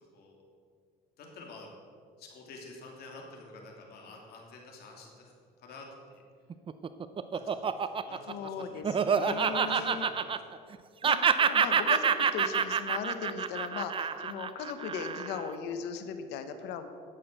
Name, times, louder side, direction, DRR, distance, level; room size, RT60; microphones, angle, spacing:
voice 1, 0.1-0.4 1.2-1.7 2.2-6.2 7.3-10.4, left 2 dB, 70° left, 0 dB, 2.8 m, -49 dB
Laughter, 6.5-10.8 11.0-15.5, right 6 dB, 30° right, 0.6 m, -28 dB
voice 2, 8.3-10.1 11.0-16.9, left 6 dB, 90° left, 8 dB, 1.1 m, -38 dB
11.0 x 8.1 x 6.7 m, 2.2 s
cardioid pair, 110°, 17 cm